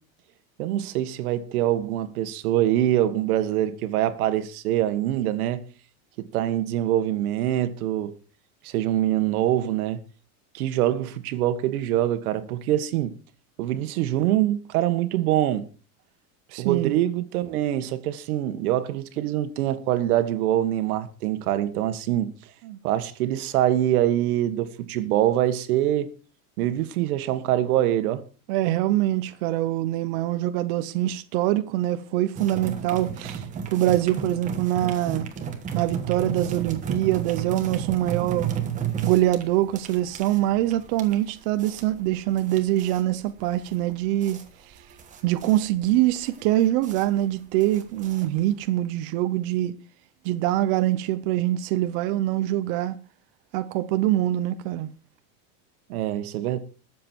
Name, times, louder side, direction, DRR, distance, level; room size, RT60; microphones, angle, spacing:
voice 1, 0.6-5.6 6.2-8.2 8.6-10.0 10.5-13.1 13.6-15.7 16.6-22.3 22.8-26.1 26.6-28.2 55.9-56.6, right 12 dB, 85° right, 1.7 m, -24 dB
voice 2, 16.5-17.0 22.6-22.8 28.5-33.4 33.7-35.3 35.7-38.5 39.0-44.4 45.2-49.8 50.2-53.0 53.5-54.9, right 14 dB, 40° right, 0.8 m, -24 dB
sound 1, 32.4-48.7, right 7 dB, 20° right, 1.3 m, -33 dB
21.0 x 7.5 x 4.6 m
supercardioid pair, 180°, 42 cm